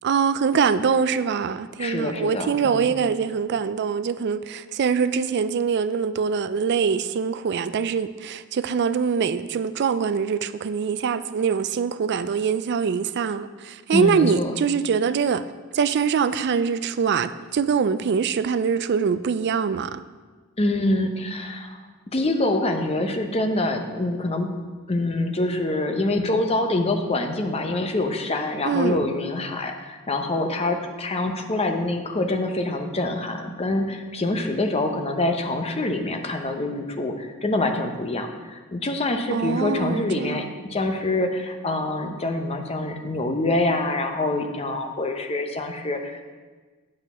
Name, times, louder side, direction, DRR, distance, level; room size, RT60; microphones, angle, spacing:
voice 1, 0.0-15.4 15.7-20.0 28.7-29.0 39.3-40.5, right 6 dB, 50° right, 0.4 m, -23 dB
voice 2, 1.8-2.9 13.9-14.5 20.6-21.8 22.1-24.5 24.9-46.3, left 2 dB, 30° left, 0.8 m, -25 dB
8.4 x 6.4 x 5.5 m
head